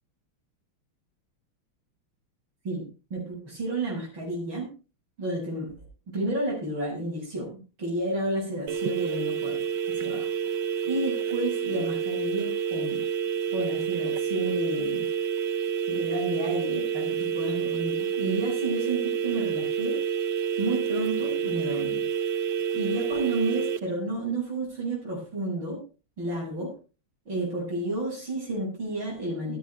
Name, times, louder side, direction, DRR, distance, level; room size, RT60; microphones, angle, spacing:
voice 1, 3.1-4.7 5.2-5.8 6.1-9.6 9.9-10.3 10.8-13.0 13.5-15.1 15.9-20.0 20.6-22.0 22.7-25.8 26.2-26.7 27.3-29.6, right 2 dB, 85° right, -8 dB, 8.0 m, -31 dB
sound 1, 8.7-23.8, right 7 dB, 65° right, 1.4 m, -29 dB
17.0 x 16.5 x 2.4 m, 0.33 s
omnidirectional pair, 2.2 m